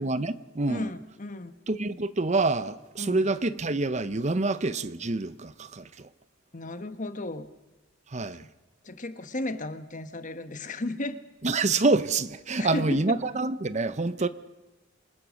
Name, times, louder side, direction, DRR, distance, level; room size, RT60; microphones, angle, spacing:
voice 1, 0.0-0.9 1.7-6.1 8.1-8.5 11.4-14.3, right 3 dB, 35° right, 0.8 m, -27 dB
voice 2, 0.7-1.5 3.0-3.2 6.5-7.5 8.8-11.2 12.6-13.2, left 1 dB, 40° left, 1.2 m, -34 dB
27.0 x 20.5 x 6.4 m
head